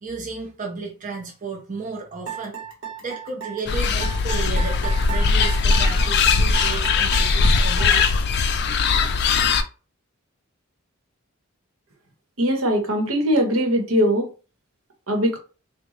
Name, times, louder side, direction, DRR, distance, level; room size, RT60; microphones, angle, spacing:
voice 1, 0.0-2.6 3.0-8.0, right 4 dB, 40° right, 0.6 m, -33 dB
sound 1, 2.3-8.3, right 7 dB, 60° right, 1.0 m, -34 dB
sound 2, 3.7-9.6, left 4 dB, 50° left, 0.4 m, -20 dB
voice 2, 12.4-14.3 15.1-15.4, equal, 80° right, 1.0 m, -21 dB
3.7 x 2.2 x 3.1 m
head